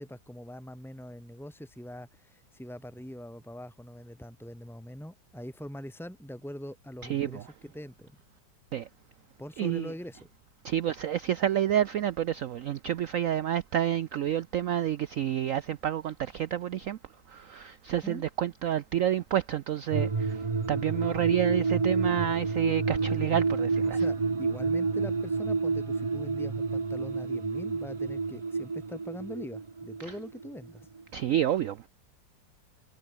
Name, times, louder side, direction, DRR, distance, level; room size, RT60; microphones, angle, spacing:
voice 1, 0.0-8.2 9.4-10.3 18.0-18.2 23.9-30.9, equal, ahead, 4.3 m, -43 dB
voice 2, 7.0-7.4 8.7-8.9 9.6-9.9 10.6-17.0 17.3-24.0 31.1-31.9, right 10 dB, 75° right, 0.7 m, -29 dB
sound 1, 19.9-30.7 31.0-31.1, right 4 dB, 30° right, 0.5 m, -29 dB
omnidirectional pair, 2.0 m